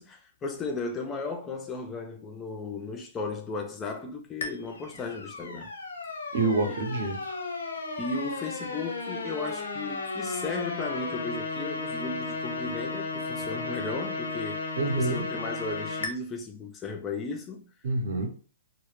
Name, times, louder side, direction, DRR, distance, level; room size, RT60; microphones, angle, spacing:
voice 1, 0.0-5.7 6.7-6.8 8.0-14.6 14.9-17.7, left 3 dB, 15° left, 0.4 m, -35 dB
sound 1, 4.4-16.1, left 3 dB, 85° left, 0.7 m, -34 dB
voice 2, 6.3-7.4 14.8-15.3 17.8-18.3, right 3 dB, 60° right, 0.7 m, -27 dB
2.0 x 2.0 x 3.0 m
hypercardioid pair, 150°, 0 cm